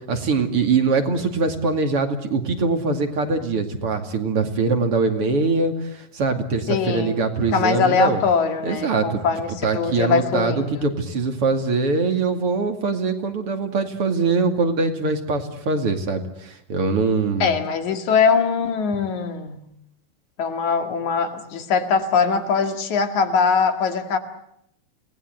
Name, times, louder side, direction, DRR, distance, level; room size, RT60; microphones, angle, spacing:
voice 1, 0.1-8.2 8.6-9.2 9.6-17.5, right 4 dB, 45° right, 3.1 m, -22 dB
voice 2, 6.7-7.2 7.5-10.9 17.4-19.7 20.4-24.2, left 5 dB, 65° left, 3.4 m, -22 dB
29.5 x 19.5 x 8.0 m
omnidirectional pair, 3.7 m